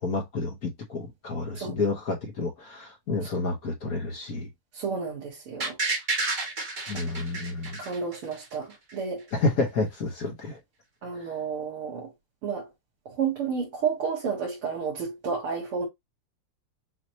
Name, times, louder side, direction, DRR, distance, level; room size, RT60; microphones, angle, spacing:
voice 1, 0.0-4.5 6.9-7.8 9.3-10.6, left 3 dB, 50° left, 1.3 m, -30 dB
voice 2, 4.7-5.8 6.9-7.2 7.7-9.3 11.0-12.1 12.4-12.7 13.1-15.9, right 6 dB, 90° right, 2.5 m, -31 dB
sound 1, 5.6-8.5 8.9-9.0, right 3 dB, 30° right, 1.1 m, -30 dB
6.3 x 2.9 x 2.8 m
omnidirectional pair, 2.3 m